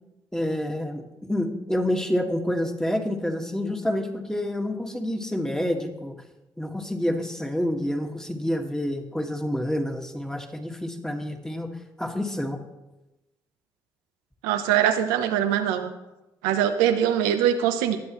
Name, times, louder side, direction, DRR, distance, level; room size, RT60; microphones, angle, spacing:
voice 1, 0.3-6.1 6.6-11.7 12.0-12.6, left 1 dB, 5° left, 4 dB, 1.9 m, -28 dB
voice 2, 14.4-15.9 16.4-18.0, right 10 dB, 90° right, 7 dB, 0.8 m, -22 dB
21.0 x 7.9 x 3.1 m, 1.0 s
supercardioid pair, 55°, 10 cm